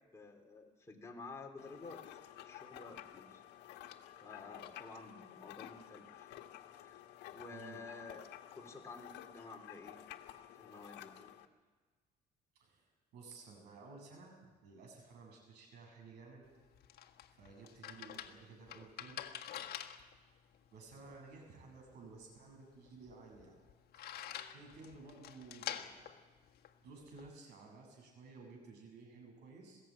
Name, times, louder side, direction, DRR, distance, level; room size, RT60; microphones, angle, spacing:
voice 1, 0.0-2.0 2.4-3.4 3.7-3.9 4.2-6.3 6.7-7.0 7.3-8.2 8.5-10.0 10.6-11.3, left 3 dB, 15° left, 0 dB, 3.6 m, -52 dB
sound 1, 1.6-11.5, left 12 dB, 85° left, 1.5 m, -52 dB
voice 2, 7.5-7.8 12.6-16.5 17.3-19.3 20.7-23.6 24.1-24.2 24.5-26.1 26.8-29.8, right 4 dB, 80° right, 1 dB, 7.9 m, -55 dB
sound 2, 16.4-27.3, left 10 dB, 70° left, 1.5 m, -48 dB
21.0 x 16.0 x 9.0 m, 1.4 s
cardioid pair, 110°, 17 cm